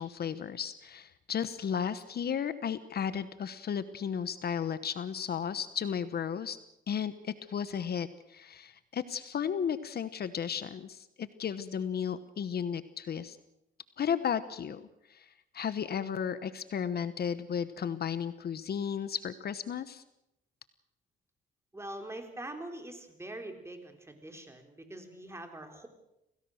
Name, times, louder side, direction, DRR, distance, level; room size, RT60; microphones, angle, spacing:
voice 1, 0.0-6.6 6.9-13.4 14.0-14.8 15.1-20.0, left 7 dB, 55° left, 13 dB, 1.1 m, -34 dB
voice 2, 21.7-25.9, right 1 dB, 15° right, 5 dB, 4.0 m, -43 dB
27.5 x 18.0 x 6.5 m, 0.85 s
cardioid pair, 90°, 20 cm